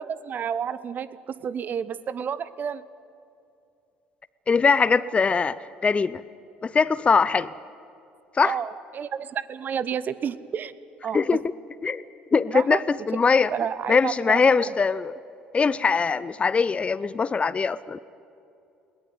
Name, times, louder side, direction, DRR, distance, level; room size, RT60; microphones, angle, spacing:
voice 1, 0.0-2.8 8.4-10.7 11.0-11.2 12.5-12.8 13.5-14.7, right 7 dB, 40° right, 16 dB, 0.9 m, -30 dB
voice 2, 4.5-5.6 5.8-6.2 6.6-7.5 8.3-8.6 11.1-11.4 11.8-12.0 12.3-13.5 13.9-15.1 15.5-18.0, left 5 dB, 25° left, 18 dB, 0.6 m, -21 dB
21.0 x 18.5 x 9.7 m, 2.6 s
figure-of-eight pair, 55°, 5 cm